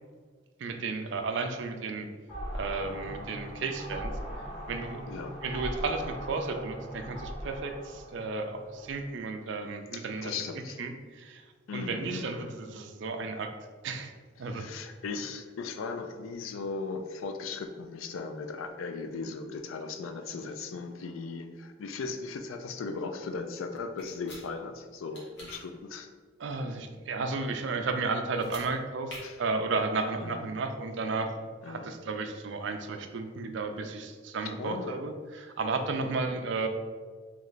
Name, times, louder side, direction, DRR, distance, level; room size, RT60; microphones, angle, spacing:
voice 1, 0.6-2.1 2.5-4.1 4.7-5.0 5.4-10.3 10.8-11.4 11.7-13.6 13.8-14.1 14.4-14.7 26.4-31.3 31.7-36.7, right 3 dB, 65° right, 6 dB, 0.4 m, -33 dB
sound 1, 2.3-9.0, equal, 25° left, 1.2 m, -40 dB
voice 2, 9.9-10.8 11.7-12.5 14.4-26.1 29.2-29.4 30.2-30.5 31.6-31.9 34.6-34.9 36.0-36.2, left 4 dB, 90° left, 7 dB, 0.4 m, -38 dB
sound 2, 24.0-24.4 25.1-25.6 28.3-28.7 29.1-29.2, left 1 dB, 60° left, 1.3 m, -45 dB
3.2 x 3.1 x 3.9 m, 1.5 s
head